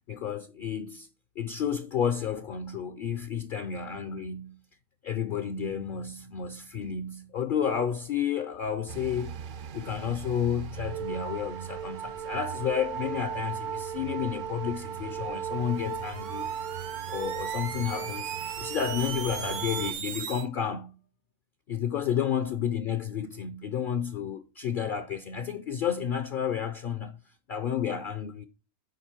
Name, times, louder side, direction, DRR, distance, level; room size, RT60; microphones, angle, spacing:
voice 1, 0.1-1.1 1.4-4.6 5.0-9.4 9.7-16.5 16.8-18.3 18.6-21.0 21.7-27.2 27.5-28.5, left 8 dB, 55° left, 0.6 m, -31 dB
sound 1, 8.9-19.9, right 8 dB, 60° right, 0.5 m, -36 dB
Squeal of transistors, 15.6-20.5, right 8 dB, 75° right, 1.1 m, -39 dB
8.0 x 5.0 x 4.3 m
omnidirectional pair, 1.3 m